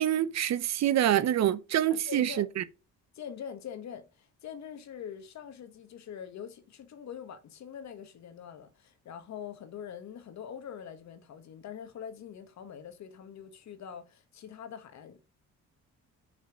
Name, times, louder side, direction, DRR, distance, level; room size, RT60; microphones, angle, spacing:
voice 1, 0.0-2.6, right 11 dB, 60° right, 0.7 m, -26 dB
voice 2, 1.9-2.5 3.1-15.2, left 8 dB, 65° left, 1.3 m, -44 dB
6.1 x 4.3 x 5.0 m
cardioid pair, 90°, 30 cm